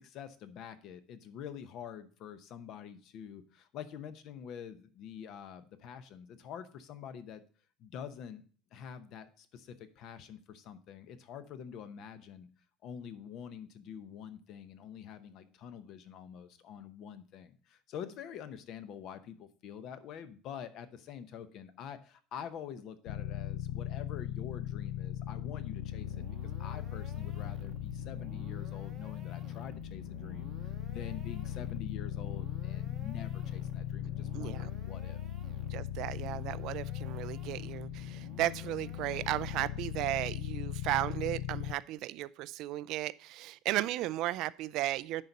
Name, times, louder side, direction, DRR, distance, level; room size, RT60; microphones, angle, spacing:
voice 1, 0.0-7.4 7.8-8.4 8.7-12.5 12.8-35.2, left 8 dB, 45° left, 0.8 m, -46 dB
sound 1, 23.1-41.7, left 12 dB, 80° left, 0.4 m, -39 dB
sound 2, 26.0-40.0, right 7 dB, 30° right, 0.8 m, -55 dB
voice 2, 34.3-34.7 35.7-45.2, right 15 dB, 50° right, 0.3 m, -35 dB
10.5 x 4.1 x 5.3 m
cardioid pair, 160°, 0 cm